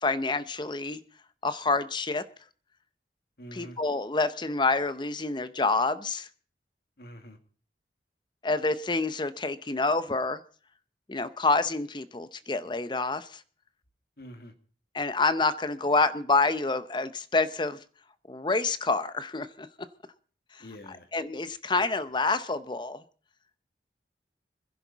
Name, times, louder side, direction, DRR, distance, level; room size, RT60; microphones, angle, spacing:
voice 1, 0.0-1.0 1.4-2.2 3.5-6.3 8.4-10.4 11.1-13.4 14.9-17.8 18.3-19.7 20.5-20.6 21.1-23.0, left 3 dB, 25° left, 0.7 m, -27 dB
voice 2, 3.4-3.8 7.0-7.4 14.2-14.5 20.6-21.1, equal, 60° left, 2.0 m, -45 dB
25.0 x 11.0 x 4.0 m
head